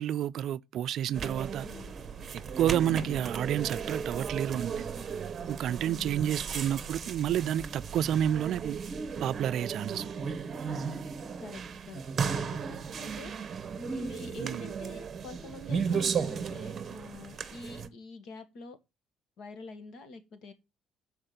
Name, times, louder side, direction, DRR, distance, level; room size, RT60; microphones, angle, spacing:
voice 1, 0.0-1.7 2.6-4.8 5.5-8.8 9.2-10.1 14.4-14.6, right 10 dB, 55° right, 0.4 m, -30 dB
sound 1, 1.1-17.9, right 6 dB, 30° right, 0.9 m, -35 dB
voice 2, 1.6-2.0 2.8-3.1 5.8-6.3 9.8-10.3 10.7-11.0 11.4-13.3 13.9-18.8 19.4-20.5, left 3 dB, 60° left, 1.6 m, -46 dB
7.6 x 4.7 x 6.7 m
cardioid pair, 145°, 0 cm